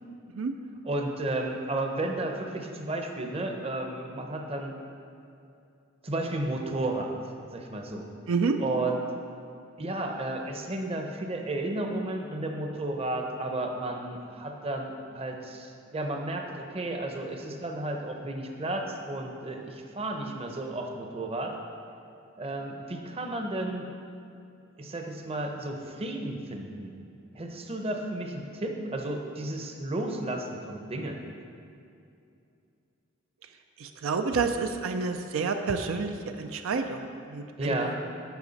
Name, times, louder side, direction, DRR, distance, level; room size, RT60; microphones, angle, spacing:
voice 1, 0.8-4.8 6.0-7.1 7.5-8.0 8.6-9.0 9.8-21.5 22.4-23.9 24.8-26.9 27.3-31.2 37.6-38.0, right 2 dB, 30° right, 3 dB, 0.7 m, -33 dB
voice 2, 8.3-8.6 33.8-37.9, right 4 dB, 80° right, 6 dB, 0.5 m, -29 dB
10.5 x 5.9 x 4.0 m, 2.6 s
head